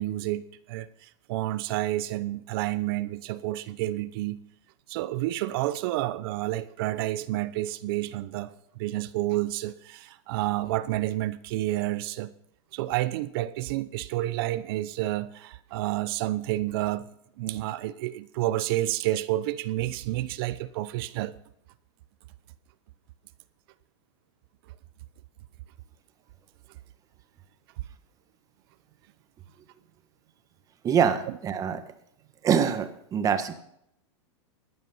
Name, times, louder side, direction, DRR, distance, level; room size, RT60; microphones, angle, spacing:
voice 1, 0.0-4.4 4.9-12.3 12.7-17.1 17.4-21.3 31.3-31.4, right 16 dB, 50° right, 0.8 m, -30 dB
voice 2, 30.8-31.8 32.4-33.5, right 7 dB, 20° right, 1.4 m, -24 dB
15.0 x 10.5 x 5.6 m
supercardioid pair, 145°, 15 cm